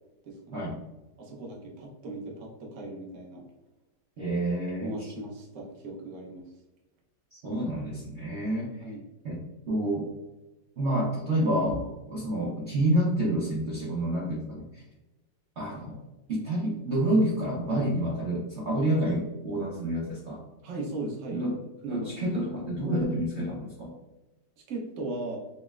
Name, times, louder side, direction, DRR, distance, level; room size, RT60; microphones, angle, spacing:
voice 1, 0.2-0.7 1.2-3.4 4.8-6.4 8.8-9.0 20.6-21.4 21.8-22.4 24.7-25.4, right 2 dB, 55° right, -2 dB, 0.9 m, -37 dB
voice 2, 4.2-5.0 7.3-8.9 9.2-10.1 10.8-14.8 15.6-16.0 16.3-20.4 21.3-21.6 21.9-23.9, right 1 dB, 80° right, -6 dB, 0.6 m, -28 dB
5.2 x 2.1 x 2.3 m, 1.0 s
omnidirectional pair, 2.2 m